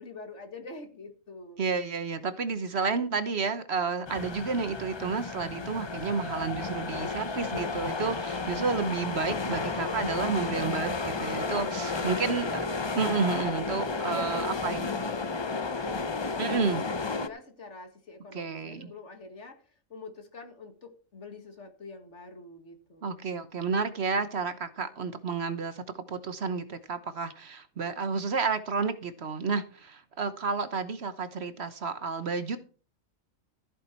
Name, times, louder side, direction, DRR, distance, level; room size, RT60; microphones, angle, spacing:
voice 1, 0.0-1.7 12.0-12.6 14.1-19.6 19.9-23.2, left 3 dB, 60° left, 6 dB, 2.3 m, -45 dB
voice 2, 1.6-12.6 12.9-14.9 16.4-16.8 18.3-18.9 23.0-32.6, right 5 dB, 55° right, 12 dB, 1.2 m, -31 dB
sound 1, 4.1-17.3, left 4 dB, 30° left, 0.5 m, -32 dB
14.0 x 8.3 x 4.4 m, 0.38 s
omnidirectional pair, 1.3 m